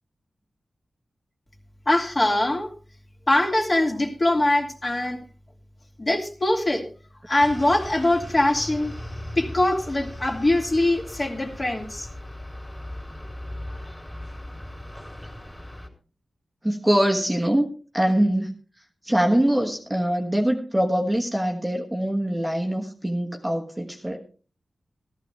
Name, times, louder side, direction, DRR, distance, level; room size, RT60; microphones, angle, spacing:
voice 1, 1.9-2.7 3.3-5.2 6.0-6.8 7.3-8.9 9.4-12.1, left 1 dB, 30° left, 1 dB, 2.7 m, -22 dB
sound 1, 7.4-15.9, left 1 dB, 15° left, 3.1 m, -38 dB
voice 2, 16.6-18.5 19.0-24.2, right 1 dB, 10° right, 1 dB, 1.4 m, -23 dB
14.5 x 14.0 x 3.4 m, 0.37 s
wide cardioid pair, 100°, 0 cm